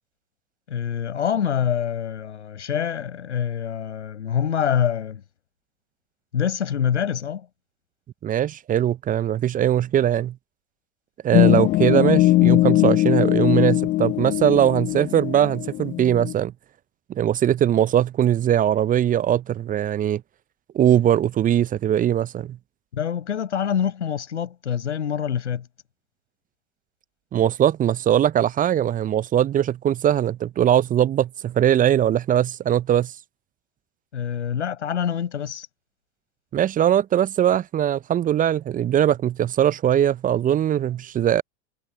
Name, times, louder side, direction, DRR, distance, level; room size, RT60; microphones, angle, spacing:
voice 1, 0.7-5.2 6.3-7.5 22.9-25.7 34.1-35.7, left 8 dB, 75° left, 7.0 m, -25 dB
voice 2, 8.2-10.3 11.2-16.5 17.1-20.2 20.7-22.6 27.3-33.1 36.5-41.4, right 10 dB, 25° right, 0.7 m, -20 dB
sound 1, 11.3-16.3, left 17 dB, 25° left, 0.4 m, -20 dB
figure-of-eight pair, 90°, 35 cm